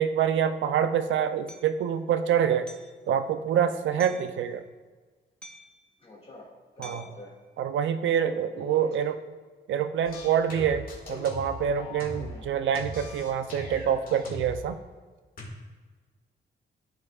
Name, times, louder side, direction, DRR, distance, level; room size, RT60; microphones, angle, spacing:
voice 1, 0.0-2.7 3.1-4.6 6.8-7.0 7.6-9.1 9.7-14.8, right 8 dB, 85° right, 9 dB, 0.5 m, -26 dB
Hammer, 1.5-1.7 2.7-3.0 4.0-4.3 5.4-5.8 6.8-7.2, equal, 5° left, 0.7 m, -46 dB
voice 2, 6.0-6.5 6.8-7.4 8.2-9.0 12.1-12.5, left 2 dB, 30° left, -3 dB, 2.0 m, -45 dB
sound 1, 10.0-12.4 12.7-14.6 15.4-15.5, left 2 dB, 50° left, 1.7 m, -39 dB
14.0 x 5.5 x 2.4 m, 1.4 s
wide cardioid pair, 180°, 19 cm